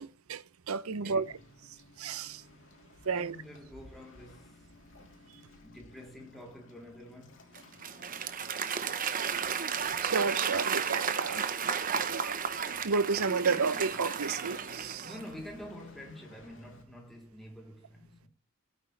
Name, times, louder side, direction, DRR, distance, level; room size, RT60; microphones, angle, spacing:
voice 1, 0.0-1.3 2.0-2.4 3.0-3.4 10.0-12.4 12.8-15.1, right 5 dB, 85° right, 0.7 m, -32 dB
voice 2, 0.9-1.3 3.0-4.7 5.6-7.5 15.0-18.3, left 1 dB, ahead, 3.3 m, -48 dB
Waves surf, 1.2-16.8, left 2 dB, 60° left, 3.4 m, -56 dB
Applause / Crowd, 7.5-15.3, right 7 dB, 40° right, 0.9 m, -33 dB
17.5 x 9.1 x 3.3 m
head